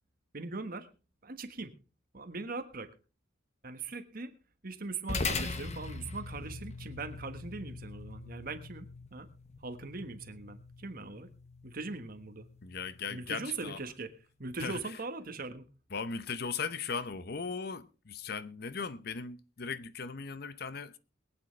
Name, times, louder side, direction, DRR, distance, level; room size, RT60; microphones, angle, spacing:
voice 1, 0.3-0.9 1.2-1.7 2.1-2.9 3.6-4.3 4.6-9.3 9.6-11.3 11.6-12.5 13.1-14.1 14.4-15.7, right 3 dB, 50° right, 1.4 m, -40 dB
sound 1, 5.1-13.7, left 3 dB, 35° left, 1.1 m, -41 dB
voice 2, 12.6-13.8 14.6-14.8 15.9-20.9, left 5 dB, 55° left, 0.8 m, -38 dB
22.5 x 9.0 x 3.2 m
head